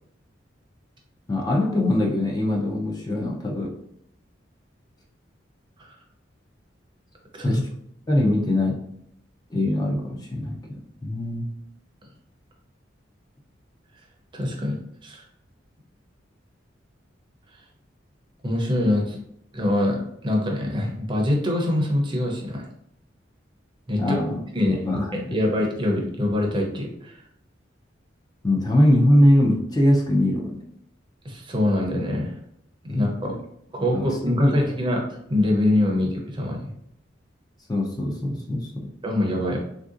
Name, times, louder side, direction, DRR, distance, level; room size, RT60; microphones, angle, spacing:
voice 1, 1.3-3.7 7.4-7.6 8.1-8.8 9.5-10.6 11.0-11.5 23.9-24.4 24.7-25.4 28.4-30.5 32.9-33.4 33.9-34.0 34.4-34.5 37.7-38.9, left 1 dB, 20° left, -1 dB, 0.4 m, -22 dB
voice 2, 14.3-14.8 15.0-15.2 18.4-19.2 19.5-20.0 20.2-22.6 23.9-24.2 24.5-24.9 25.1-27.2 31.2-32.3 32.8-33.3 33.7-35.0 35.3-36.7 39.0-39.6, left 1 dB, 25° right, 0 dB, 0.6 m, -24 dB
3.4 x 2.6 x 2.4 m, 0.73 s
head